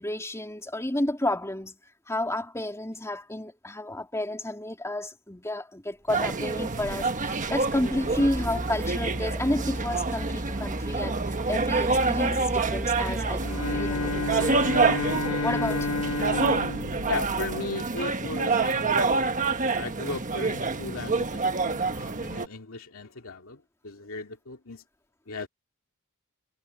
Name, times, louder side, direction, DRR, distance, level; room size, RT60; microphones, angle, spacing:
voice 1, 0.0-1.7 2.1-14.5 15.4-16.0, left 1 dB, 15° left, 3.3 m, -31 dB
sound 1, 6.1-22.5, right 4 dB, 35° right, 1.3 m, -27 dB
Mechanical fan, 6.7-17.6, equal, 5° right, 0.7 m, -37 dB
Bowed string instrument, 13.4-18.0, left 2 dB, 90° left, 1.7 m, -31 dB
voice 2, 17.1-23.6 23.8-24.8 25.3-25.5, left 3 dB, 65° left, 2.7 m, -36 dB
head